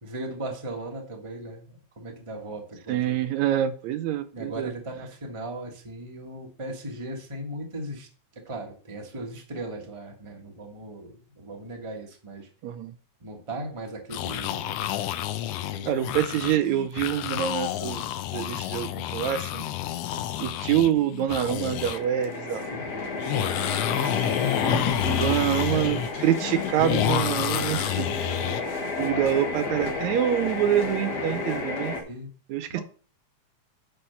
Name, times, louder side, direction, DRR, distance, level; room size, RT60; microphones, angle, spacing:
voice 1, 0.0-3.2 4.3-8.1 8.3-12.5 13.2-14.8 15.6-16.1 22.7-24.5 25.2-26.0 28.4-28.6 32.1-32.3 32.7-32.8, right 1 dB, 30° right, 1 dB, 0.5 m, -38 dB
voice 2, 2.9-4.7 12.6-12.9 15.9-19.7 20.4-22.7 25.0-28.1 28.3-28.4 29.0-32.0 32.5-32.8, right 11 dB, 80° right, 10 dB, 1.9 m, -26 dB
sound 1, 14.1-22.0 22.2-22.3 23.2-28.6, left 12 dB, 80° left, 1.4 m, -29 dB
sound 2, 21.4-32.0, left 3 dB, 50° left, 1.2 m, -31 dB
10.0 x 3.9 x 5.5 m, 0.40 s
omnidirectional pair, 3.4 m